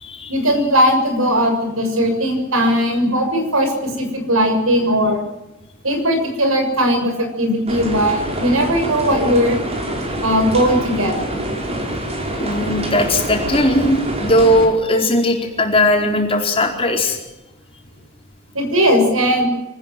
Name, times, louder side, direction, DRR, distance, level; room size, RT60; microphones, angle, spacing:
voice 1, 0.3-5.2 5.8-9.6 10.2-11.4 18.5-19.5, equal, 65° right, 5 dB, 6.9 m, -18 dB
sound 1, 7.7-14.7, right 1 dB, 30° right, 5.3 m, -26 dB
voice 2, 12.4-17.2, left 1 dB, 25° left, 2 dB, 4.5 m, -18 dB
25.5 x 19.5 x 7.8 m, 1.0 s
head